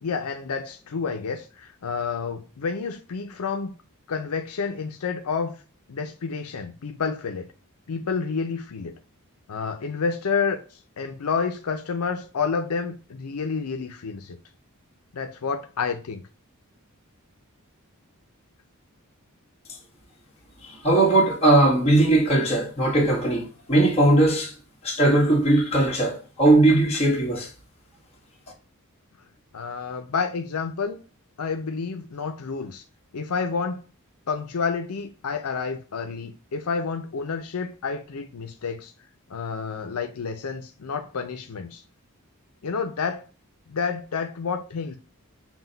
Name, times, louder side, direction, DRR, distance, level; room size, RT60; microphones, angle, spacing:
voice 1, 0.0-3.8 4.1-5.6 5.9-7.5 7.9-9.0 9.5-10.6 11.0-14.4 15.1-16.2 29.5-31.0 31.4-32.8 33.1-33.8 34.3-38.9 39.3-41.8 42.6-43.2 43.7-45.0, left 5 dB, 80° left, 0.6 m, -29 dB
voice 2, 20.8-24.5 24.8-27.5, right 2 dB, 30° left, 1.5 m, -19 dB
6.1 x 2.2 x 3.9 m
head